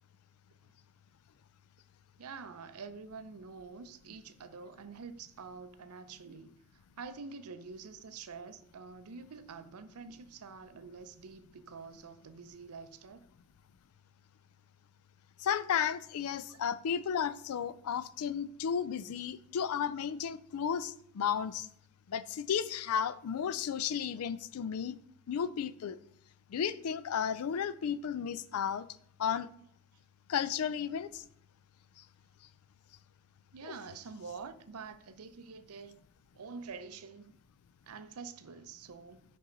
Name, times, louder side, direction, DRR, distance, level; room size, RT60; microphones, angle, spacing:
voice 1, 2.2-6.6 7.0-13.2 16.5-16.6 33.5-36.0 36.3-37.3 37.9-39.2, right 5 dB, 90° right, 0.6 m, -47 dB
voice 2, 15.4-21.7 22.1-25.0 25.3-26.0 26.5-28.9 29.2-29.5 30.3-31.2 33.6-33.7, left 8 dB, 80° left, 0.4 m, -33 dB
5.5 x 5.4 x 3.9 m
head